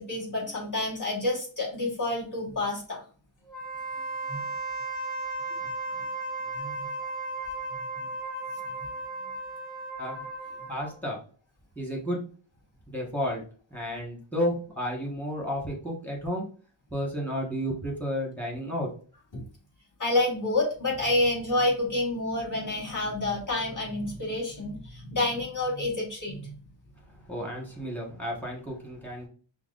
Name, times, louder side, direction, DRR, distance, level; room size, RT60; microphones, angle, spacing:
voice 1, 0.0-3.0 4.3-4.5 5.9-6.0 6.5-6.9 19.3-19.4 20.0-26.5, left 2 dB, 40° left, -3 dB, 1.6 m, -29 dB
Wind instrument woodwind instrument, 3.5-10.9, right 2 dB, 65° left, 1.5 m, -35 dB
voice 2, 10.7-11.2 11.7-12.2 12.9-13.4 13.7-16.5 16.9-18.9 27.3-29.3, equal, 5° left, -2 dB, 1.3 m, -32 dB
5.8 x 2.1 x 2.5 m, 0.40 s
wide cardioid pair, 105°, 49 cm